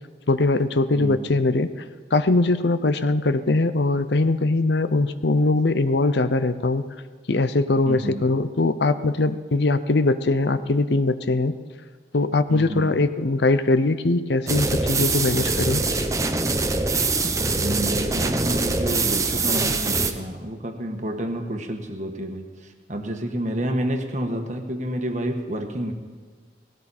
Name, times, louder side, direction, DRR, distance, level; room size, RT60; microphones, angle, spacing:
voice 1, 0.3-1.7 2.1-6.8 7.3-11.6 12.1-15.8, left 2 dB, 70° left, 12 dB, 0.7 m, -21 dB
voice 2, 0.9-1.3 7.8-8.2 12.5-12.9 17.2-25.9, right 1 dB, 40° right, 4 dB, 1.4 m, -29 dB
sound 1, 14.5-20.1, right 3 dB, 15° right, 0.7 m, -23 dB
18.5 x 17.0 x 4.3 m, 1.5 s
head